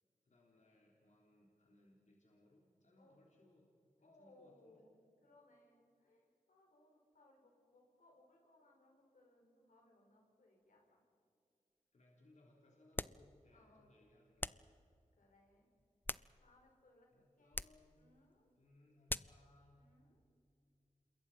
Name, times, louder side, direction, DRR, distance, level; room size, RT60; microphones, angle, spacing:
voice 1, 0.2-3.7 4.0-4.8 11.9-14.8 17.1-18.0 18.5-19.9, left 1 dB, 65° left, -1 dB, 3.6 m, -68 dB
voice 2, 4.0-4.9 5.2-11.0 13.5-13.9 15.2-15.7 16.4-17.1 17.4-18.5 19.7-20.2, left 2 dB, 85° left, 1 dB, 5.2 m, -68 dB
sound 1, 12.9-13.3 14.4-14.7 15.8-16.7 17.5-17.9 19.1-19.4, left 2 dB, 15° left, 0.5 m, -43 dB
27.5 x 22.0 x 5.7 m, 2.4 s
cardioid pair, 45°, 13 cm